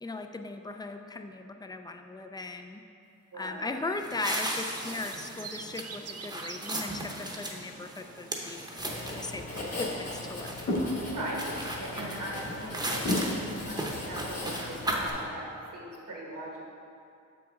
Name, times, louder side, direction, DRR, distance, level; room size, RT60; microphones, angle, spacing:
voice 1, 0.0-2.8 3.4-8.7 9.1-9.4 9.8-10.5, left 3 dB, 15° left, 6 dB, 0.4 m, -38 dB
voice 2, 3.3-3.8 11.0-11.4 11.8-13.2 13.7-16.7, right 1 dB, 75° right, -4 dB, 1.7 m, -40 dB
sound 1, 4.0-15.1, right 1 dB, 15° right, 0.8 m, -37 dB
sound 2, 4.5-6.9 8.1-8.6, right 6 dB, 50° right, 0.5 m, -44 dB
Writing, 8.8-15.2, left 1 dB, 50° left, 1.4 m, -35 dB
7.0 x 6.1 x 3.6 m, 2.5 s
wide cardioid pair, 90°, 31 cm